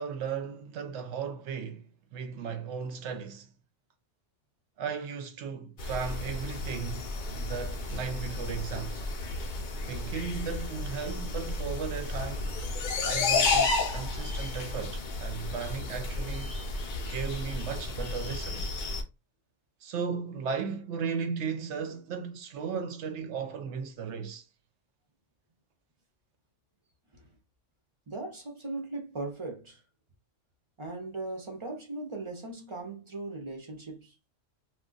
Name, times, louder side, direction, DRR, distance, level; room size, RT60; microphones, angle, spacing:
voice 1, 0.0-3.5 4.8-9.0 9.8-12.6 13.0-16.5 17.1-18.7 19.8-24.4, right 6 dB, 70° right, 0.8 m, -36 dB
sound 1, 5.8-19.0, left 3 dB, 55° left, 0.6 m, -32 dB
voice 2, 28.1-29.8 30.8-34.3, right 2 dB, 35° right, 0.5 m, -38 dB
2.3 x 2.2 x 3.7 m
omnidirectional pair, 1.3 m